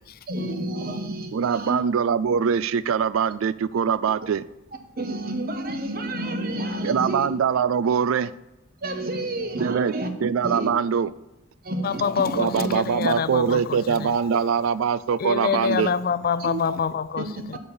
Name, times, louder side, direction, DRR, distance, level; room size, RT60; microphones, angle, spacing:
voice 1, 0.3-1.8 5.0-7.3 8.8-10.1 10.4-10.7 11.6-12.8 14.0-14.4 15.7-15.8 16.4-16.8 17.2-17.3, right 1 dB, 50° right, 5 dB, 1.2 m, -30 dB
voice 2, 1.3-4.4 6.8-8.3 9.6-9.9 10.2-11.1 12.3-15.9, right 7 dB, 85° right, 16 dB, 0.4 m, -23 dB
voice 3, 11.8-14.2 15.2-17.6, left 6 dB, 50° left, 15 dB, 0.4 m, -26 dB
11.5 x 4.4 x 7.0 m, 0.96 s
head